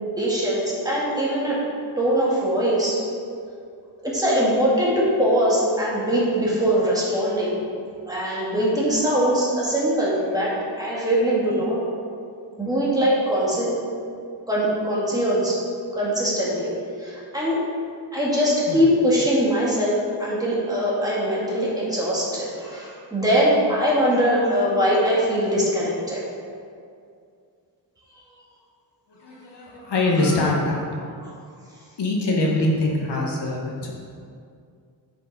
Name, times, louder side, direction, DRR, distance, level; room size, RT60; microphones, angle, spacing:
voice 1, 0.1-1.6 2.0-3.0 4.0-7.6 8.1-11.8 12.6-13.7 14.5-15.6 15.9-16.7 17.0-17.6 18.1-26.2 31.2-31.3, equal, 10° right, -7 dB, 1.8 m, -22 dB
voice 2, 29.1-30.8 32.0-33.9, left 2 dB, 65° left, -2 dB, 1.4 m, -23 dB
9.5 x 5.3 x 4.1 m, 2.3 s
wide cardioid pair, 135°, 44 cm